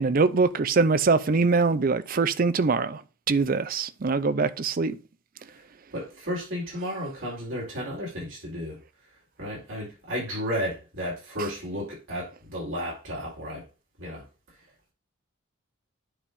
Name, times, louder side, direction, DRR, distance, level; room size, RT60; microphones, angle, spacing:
voice 1, 0.0-3.0 3.3-5.0, right 4 dB, 40° right, 0.5 m, -23 dB
voice 2, 5.9-8.8 9.4-13.6 14.0-14.2, equal, 70° right, 4.1 m, -33 dB
9.9 x 3.4 x 5.3 m
head